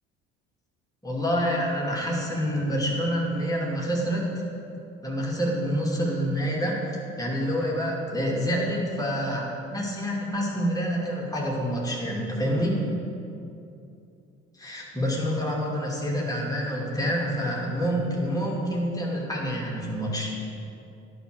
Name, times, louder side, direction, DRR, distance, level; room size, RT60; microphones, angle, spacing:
voice 1, 1.0-4.4 5.0-6.8 7.2-9.4 9.7-12.8 14.6-20.3, equal, 10° left, -4 dB, 2.5 m, -27 dB
11.0 x 5.5 x 6.8 m, 2.7 s
figure-of-eight pair, 50°, 36 cm